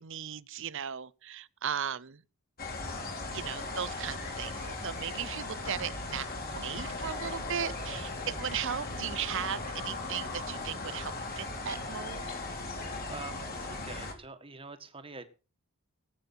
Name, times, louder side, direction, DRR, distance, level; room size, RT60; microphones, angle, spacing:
voice 1, 0.0-2.2 3.3-6.3 6.5-12.3, right 8 dB, 55° right, 0.7 m, -37 dB
sound 1, 2.6-14.1, left 2 dB, 45° left, 3.4 m, -38 dB
voice 2, 12.6-15.3, right 3 dB, 25° right, 1.6 m, -46 dB
18.5 x 8.8 x 5.8 m
head